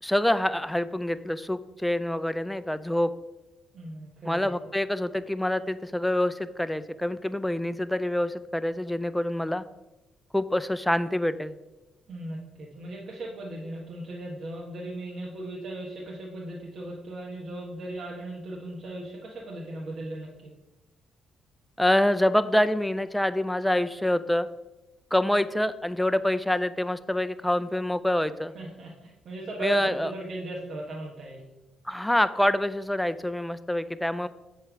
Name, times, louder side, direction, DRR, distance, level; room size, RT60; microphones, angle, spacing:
voice 1, 0.0-3.1 4.3-9.6 10.3-11.5 21.8-24.5 25.1-28.5 29.6-30.1 31.8-34.3, left 1 dB, 5° left, 13 dB, 0.4 m, -26 dB
voice 2, 3.7-4.5 12.1-20.5 28.5-31.4, right 2 dB, 60° right, -3 dB, 1.2 m, -37 dB
7.9 x 3.4 x 6.1 m, 1.0 s
cardioid pair, 90°, 0 cm